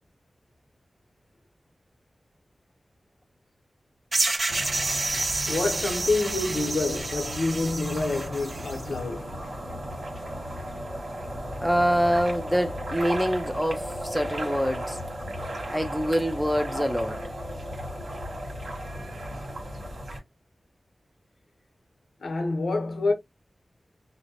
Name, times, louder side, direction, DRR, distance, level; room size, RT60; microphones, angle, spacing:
sound 1, 4.1-8.8, right 2 dB, 50° right, 0.5 m, -29 dB
sound 2, 4.5-20.2, equal, 70° right, 1.4 m, -35 dB
voice 1, 5.5-9.5 22.2-23.1, left 2 dB, 85° left, 0.8 m, -27 dB
voice 2, 11.6-15.0 15.7-17.2, equal, ahead, 0.6 m, -25 dB
2.7 x 2.1 x 2.6 m
wide cardioid pair, 60°, 0 cm